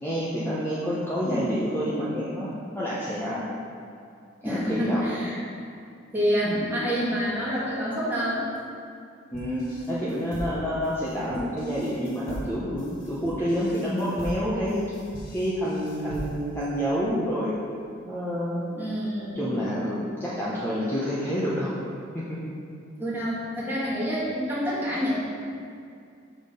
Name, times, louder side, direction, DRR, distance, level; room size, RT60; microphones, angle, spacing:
voice 1, 0.0-2.5 2.7-3.4 4.4-5.1 9.3-14.8 15.3-17.5 18.1-18.7 19.3-21.7 22.1-22.4, equal, 10° left, -9 dB, 0.7 m, -28 dB
voice 2, 1.2-1.7 4.4-5.4 6.1-8.6 18.7-19.5 23.0-25.1, equal, 10° right, -8 dB, 1.5 m, -27 dB
sound 1, 9.3-16.6, equal, 75° left, 1.0 m, -39 dB
6.2 x 3.6 x 5.0 m, 2.4 s
head